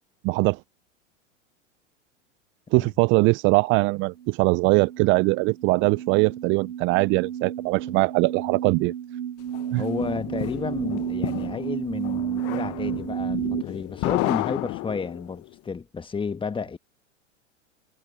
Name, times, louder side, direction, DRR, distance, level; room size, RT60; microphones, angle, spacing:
voice 1, 0.2-0.6 2.7-8.9 9.7-9.8, right 26 dB, 35° right, 0.4 m, -21 dB
sound 1, 4.2-13.6, right 10 dB, 90° right, 0.8 m, -32 dB
sound 2, 9.5-15.4, left 20 dB, 40° left, 1.2 m, -32 dB
voice 2, 9.8-16.8, left 5 dB, 15° left, 1.5 m, -32 dB
hypercardioid pair, 100°, 37 cm